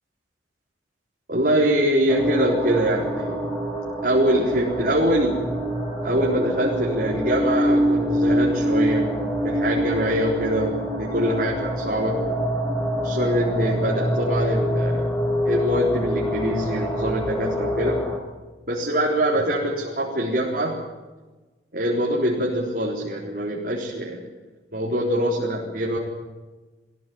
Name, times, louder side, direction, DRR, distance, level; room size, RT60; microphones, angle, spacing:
voice 1, 1.3-3.4 4.0-5.5 6.0-12.2 13.0-15.1 15.5-18.0 18.7-20.8 21.7-24.2 24.7-26.0, right 1 dB, 50° right, -5 dB, 4.1 m, -24 dB
sound 1, 2.1-18.2, equal, 15° left, 4.2 m, -25 dB
21.5 x 16.5 x 9.5 m, 1.2 s
head